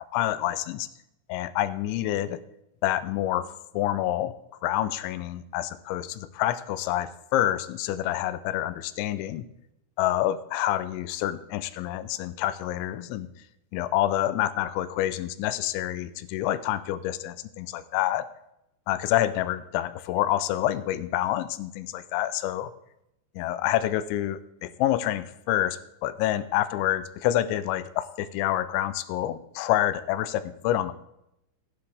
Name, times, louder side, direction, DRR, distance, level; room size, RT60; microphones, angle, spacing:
voice 1, 0.1-0.9 1.3-2.4 2.8-4.3 4.6-9.4 10.0-13.3 13.7-18.3 18.9-22.7 23.4-30.9, left 13 dB, 85° left, 14 dB, 2.9 m, -27 dB
15.0 x 9.7 x 3.4 m, 0.83 s
omnidirectional pair, 5.4 m